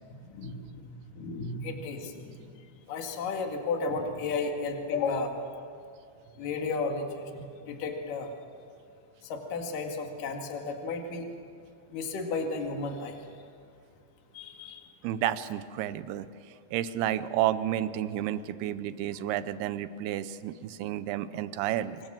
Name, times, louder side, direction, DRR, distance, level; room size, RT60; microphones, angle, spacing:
voice 1, 0.3-0.9 1.1-2.3 2.9-5.4 6.4-8.3 9.2-11.3 11.9-13.2 14.3-14.8, left 4 dB, 60° left, 3 dB, 3.5 m, -33 dB
voice 2, 15.0-22.0, right 12 dB, 80° right, 14 dB, 2.6 m, -31 dB
26.5 x 23.0 x 7.5 m, 2.2 s
omnidirectional pair, 4.7 m